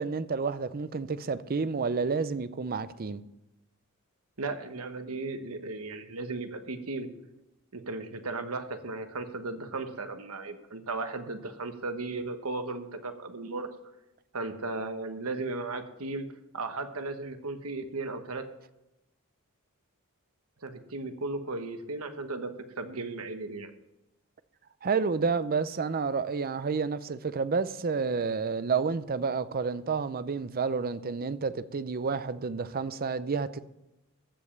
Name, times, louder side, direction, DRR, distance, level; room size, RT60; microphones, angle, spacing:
voice 1, 0.0-3.2 24.8-33.6, right 5 dB, 45° right, 0.5 m, -30 dB
voice 2, 4.4-7.1 7.7-13.7 14.3-16.3 16.5-18.5 20.6-23.7, right 3 dB, 80° right, 1.2 m, -36 dB
14.5 x 5.3 x 7.2 m
head